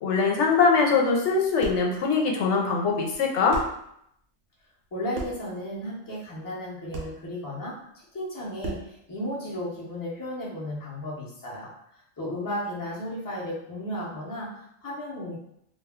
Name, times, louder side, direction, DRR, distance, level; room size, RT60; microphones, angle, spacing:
voice 1, 0.0-3.6, left 4 dB, 85° left, 0 dB, 0.9 m, -22 dB
sound 1, 1.6-1.9 3.1-3.2 3.5-3.8 5.1-5.5 6.9-7.2 8.6-9.0, right 2 dB, 60° right, 0.8 m, -35 dB
voice 2, 4.9-15.4, equal, 25° left, -5 dB, 0.6 m, -34 dB
2.3 x 2.2 x 3.4 m, 0.73 s
omnidirectional pair, 1.2 m